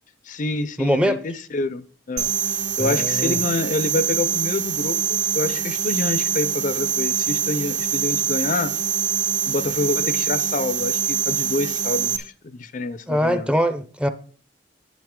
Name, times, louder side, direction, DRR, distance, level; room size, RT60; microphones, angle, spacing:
voice 1, 0.3-2.3 2.8-8.7 9.5-13.5, left 2 dB, 45° left, 0.5 m, -27 dB
voice 2, 0.8-1.2 2.8-3.4 13.1-14.1, equal, 5° right, 0.6 m, -22 dB
sound 1, 2.2-12.2, right 7 dB, 65° right, 1.5 m, -24 dB
10.5 x 8.5 x 3.7 m
head